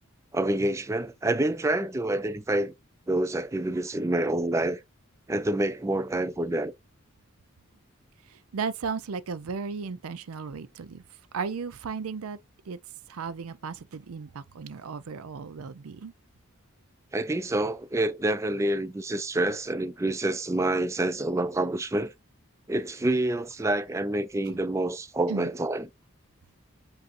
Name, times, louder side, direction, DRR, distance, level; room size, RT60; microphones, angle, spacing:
voice 1, 0.3-2.7 3.1-4.8 5.3-6.7 17.1-22.1 22.7-25.9, right 1 dB, 15° right, 0.3 m, -27 dB
voice 2, 8.2-11.0 11.3-12.4 12.7-12.8 13.1-16.1 24.5-24.6 25.3-25.5, right 5 dB, 85° right, 0.5 m, -35 dB
7.7 x 2.6 x 2.6 m
head